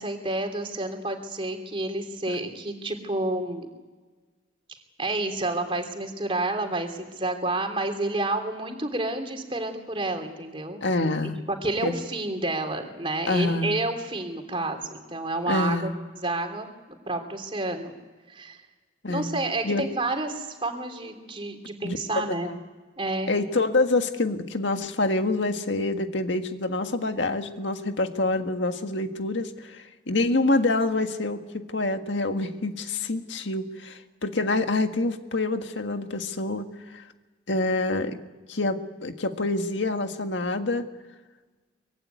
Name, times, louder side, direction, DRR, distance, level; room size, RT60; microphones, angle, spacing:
voice 1, 0.0-3.7 5.0-10.9 11.2-17.9 18.3-18.6 19.1-22.5 23.0-23.3, right 2 dB, 30° right, 5 dB, 3.2 m, -30 dB
voice 2, 10.8-11.4 11.8-12.0 13.3-13.8 15.5-15.9 19.0-19.4 19.6-19.8 21.8-22.0 22.4-22.6 23.3-31.4 31.7-37.0 37.5-38.2 38.5-40.9, left 2 dB, 80° left, 6 dB, 1.7 m, -26 dB
24.5 x 22.5 x 9.5 m, 1.3 s
head